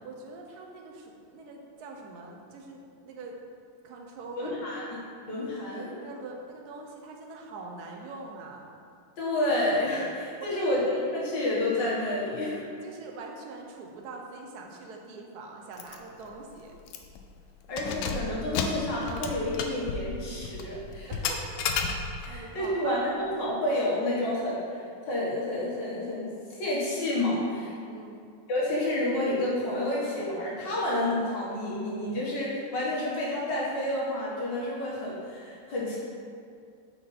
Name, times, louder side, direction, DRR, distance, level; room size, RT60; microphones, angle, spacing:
voice 1, 0.0-3.4 3.8-4.7 6.0-8.7 10.4-10.8 12.8-16.7 21.1-21.5 22.3-23.1 27.9-28.3, right 3 dB, 65° right, 1 dB, 1.1 m, -43 dB
voice 2, 4.4-4.8 5.2-6.0 9.2-12.6 17.7-21.1 22.2-26.3 26.6-27.8 28.5-36.0, left 1 dB, 65° left, -6 dB, 1.9 m, -29 dB
Keys jangling, 15.8-16.0 16.3-16.4 16.9-17.2 17.6-22.4, left 5 dB, 80° left, 1.3 m, -33 dB
5.6 x 5.0 x 4.1 m, 2.4 s
omnidirectional pair, 2.2 m